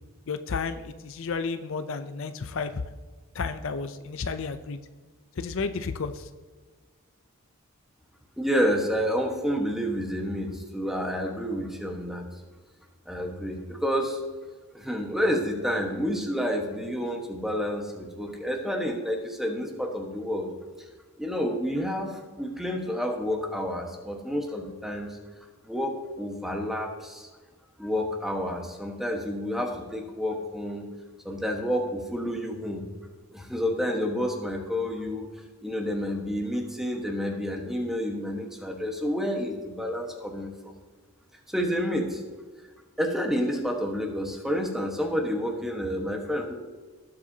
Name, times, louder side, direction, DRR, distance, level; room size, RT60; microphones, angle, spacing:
voice 1, 0.3-2.8 3.4-4.8 5.4-6.3, left 4 dB, 60° left, 10 dB, 0.5 m, -32 dB
voice 2, 8.4-12.2 13.1-14.2 14.7-20.5 21.2-25.2 25.6-27.3 27.8-30.9 31.2-32.8 33.3-35.3 35.6-40.7 41.5-42.2 43.0-46.5, equal, ahead, 1 dB, 1.3 m, -29 dB
17.5 x 7.6 x 2.8 m, 1.4 s
head